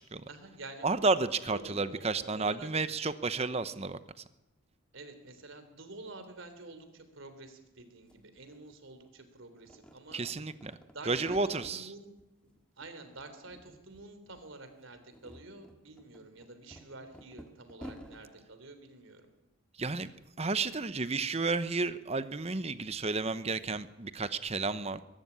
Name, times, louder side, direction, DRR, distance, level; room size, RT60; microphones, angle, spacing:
voice 1, 0.3-0.9 1.5-2.7 4.9-10.2 10.9-12.1 12.4-12.5 12.8-19.3, right 2 dB, 65° right, 8 dB, 3.4 m, -49 dB
voice 2, 0.8-4.0 10.1-10.7 11.1-11.9 19.8-20.1 20.4-25.0, right 3 dB, 30° right, 13 dB, 0.8 m, -31 dB
sound 1, 7.8-7.9 8.1-9.2 9.6-11.8 12.2-12.9 13.2-14.0 14.3-14.5 14.9-18.2, equal, 5° left, 1.8 m, -51 dB
22.5 x 13.0 x 9.8 m, 0.95 s
head